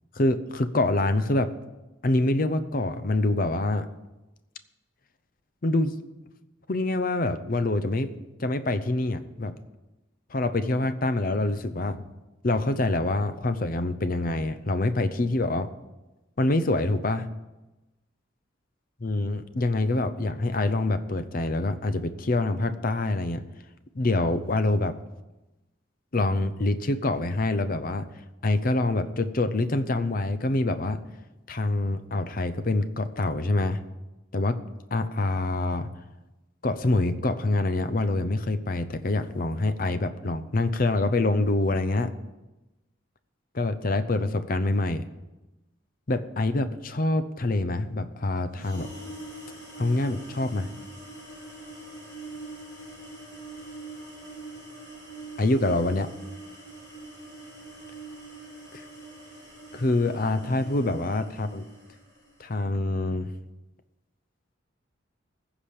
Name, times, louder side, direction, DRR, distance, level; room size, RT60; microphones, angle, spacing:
voice 1, 0.1-1.5 2.0-3.9 5.6-5.9 6.7-8.1 8.4-9.5 10.3-12.0 12.4-15.7 16.4-17.3 19.0-23.4 23.9-24.9 26.1-28.1 28.4-31.0 31.5-33.8 34.3-34.6 34.9-35.9 36.6-42.1 43.5-45.1 46.1-48.9 49.8-50.7 55.4-56.1 58.7-58.8 59.7-61.6 62.4-63.3, left 2 dB, 45° left, 12 dB, 0.7 m, -25 dB
sound 1, 48.5-62.4, right 2 dB, 20° left, 4.0 m, -43 dB
14.5 x 5.0 x 8.6 m, 1.1 s
head